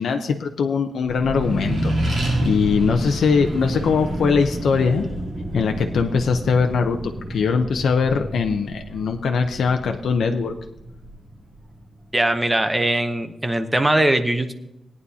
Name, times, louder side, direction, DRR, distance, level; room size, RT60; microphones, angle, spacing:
voice 1, 0.0-5.0 5.5-10.5, left 5 dB, 85° left, 4 dB, 0.7 m, -21 dB
Accelerating revving vroom, 1.0-11.9, right 1 dB, 40° right, 3.2 m, -29 dB
voice 2, 12.1-14.5, right 1 dB, 10° right, 8 dB, 0.8 m, -20 dB
17.5 x 9.6 x 2.8 m, 0.86 s
wide cardioid pair, 145°, 0 cm